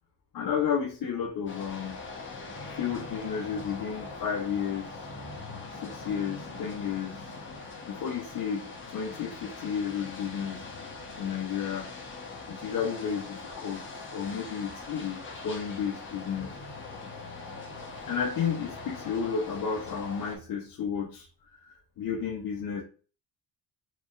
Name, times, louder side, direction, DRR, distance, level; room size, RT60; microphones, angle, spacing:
voice 1, 0.3-2.0 2.7-5.1 5.7-7.3 7.9-10.6 11.2-11.9 12.5-16.5 18.0-21.3 21.6-22.8, left 7 dB, 55° left, -2 dB, 0.8 m, -32 dB
sound 1, 1.5-20.4, left 3 dB, 30° left, 1.1 m, -42 dB
4.7 x 3.0 x 2.5 m, 0.38 s
cardioid pair, 110°, 39 cm